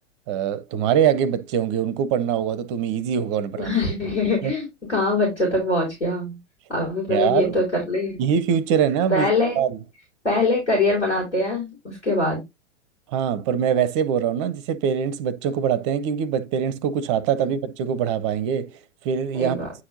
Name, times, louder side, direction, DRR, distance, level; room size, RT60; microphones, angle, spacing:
voice 1, 0.3-3.8 4.2-4.5 7.1-7.6 8.2-9.3 9.6-9.8 13.1-18.8 19.0-19.7, right 8 dB, 25° right, 0.5 m, -23 dB
voice 2, 3.6-6.4 6.7-8.2 9.1-9.6 10.2-12.4 17.4-17.5 19.3-19.7, left 2 dB, 85° left, 4.2 m, -23 dB
9.6 x 4.4 x 2.6 m
figure-of-eight pair, 100°, 35 cm